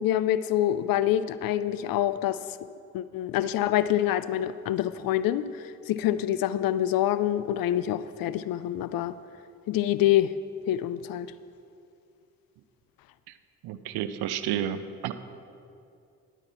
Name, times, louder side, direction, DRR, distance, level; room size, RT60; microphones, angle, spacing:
voice 1, 0.0-2.4 2.9-9.1 9.7-10.3 10.7-11.3, left 12 dB, 55° left, 14 dB, 0.5 m, -26 dB
voice 2, 13.6-14.8 15.0-15.1, right 11 dB, 65° right, 12 dB, 0.7 m, -30 dB
10.5 x 9.0 x 4.2 m, 2.5 s
hypercardioid pair, 45°, 41 cm